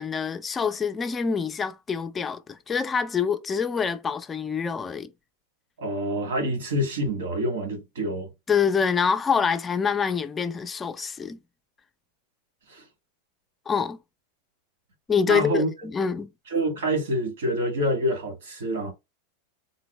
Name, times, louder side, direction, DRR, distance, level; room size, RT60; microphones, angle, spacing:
voice 1, 0.0-5.1 8.5-11.4 13.7-14.0 15.1-16.3, left 6 dB, 20° left, 0.4 m, -26 dB
voice 2, 5.8-8.3 12.7-12.8 15.3-15.7 16.5-18.9, right 1 dB, 80° right, 1.6 m, -27 dB
3.8 x 2.0 x 3.0 m
hypercardioid pair, 120°, 0 cm